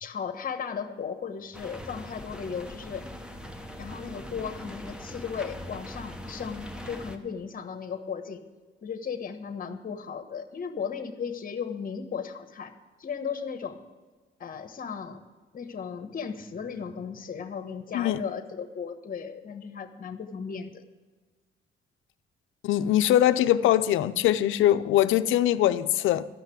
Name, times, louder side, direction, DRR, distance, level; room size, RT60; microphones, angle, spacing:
voice 1, 0.0-3.1 3.8-8.4 8.8-13.8 14.4-15.2 15.5-20.8, left 6 dB, 45° left, 9 dB, 1.2 m, -36 dB
sound 1, 1.5-7.2, equal, 5° right, 1.1 m, -41 dB
voice 2, 22.6-26.3, left 12 dB, 85° left, 12 dB, 0.6 m, -22 dB
13.0 x 5.8 x 9.0 m, 1.3 s
cardioid pair, 90°, 20 cm